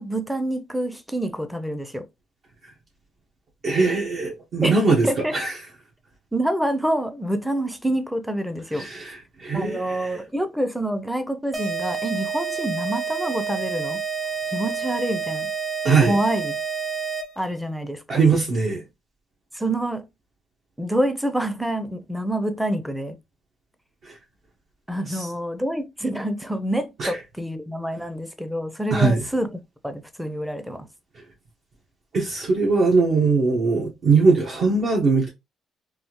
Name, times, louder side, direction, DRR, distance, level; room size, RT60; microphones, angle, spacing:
voice 1, 0.0-2.1 4.6-4.8 5.0-5.3 6.3-8.9 9.5-14.0 14.5-15.5 16.1-16.6 17.4-18.2 19.5-20.1 20.8-23.2 24.9-29.5 29.8-30.9, right 1 dB, 5° right, 0.6 m, -27 dB
voice 2, 3.6-5.6 8.7-10.2 15.8-16.2 18.1-18.8 24.0-24.2 25.1-25.3 27.0-27.2 28.9-29.2 31.1-31.2 32.1-35.3, right 4 dB, 55° right, 1.0 m, -21 dB
sound 1, 11.5-17.5, right 6 dB, 20° right, 1.0 m, -29 dB
3.5 x 2.4 x 2.9 m
cardioid pair, 95°, 0 cm